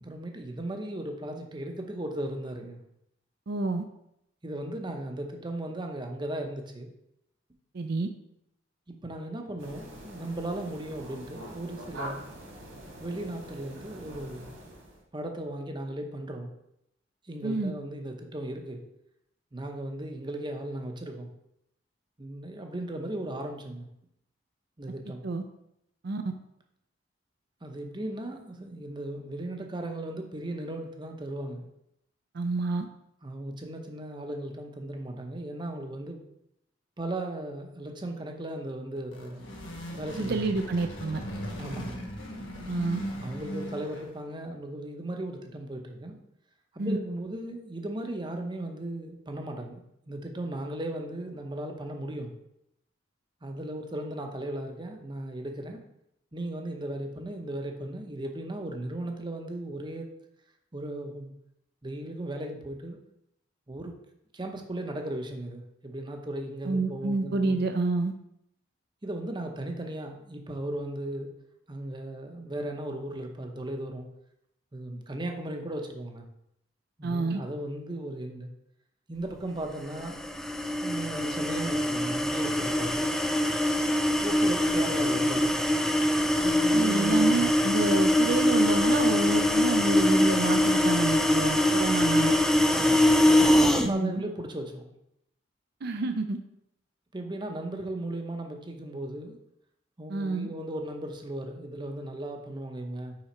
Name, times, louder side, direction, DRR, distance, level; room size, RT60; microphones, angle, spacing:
voice 1, 0.0-2.8 4.4-6.9 8.9-12.2 13.0-14.5 15.1-16.5 17.2-18.8 19.5-21.3 22.2-23.9 24.8-25.2 27.6-31.6 33.2-36.2 37.0-39.4 39.9-40.5 41.6-42.0 43.2-46.2 46.7-52.3 53.4-55.8 56.3-60.1 60.7-61.3 61.8-63.0 63.7-63.9 64.3-67.6 69.0-71.3 71.7-74.1 74.7-76.2 77.0-78.5 79.1-80.2 80.8-83.1 84.2-85.6 86.4-87.5 92.7-93.1 93.4-94.9 97.1-99.4 100.0-103.2, right 1 dB, 25° right, 4 dB, 0.7 m, -36 dB
voice 2, 3.5-3.8 7.7-8.1 17.4-17.7 25.2-25.4 26.0-26.2 32.3-32.9 40.2-41.2 42.7-43.0 46.8-47.0 66.6-68.1 77.0-77.4 86.7-92.3 93.8-94.2 95.8-96.4 100.1-100.5, right 3 dB, 55° right, 7 dB, 0.5 m, -28 dB
sound 1, 9.6-15.0, right 1 dB, 80° right, 2.0 m, -44 dB
sound 2, 39.0-44.3, equal, 75° left, 1.3 m, -38 dB
sound 3, 80.0-93.9, left 1 dB, ahead, 0.3 m, -23 dB
5.8 x 4.9 x 4.3 m, 0.79 s
head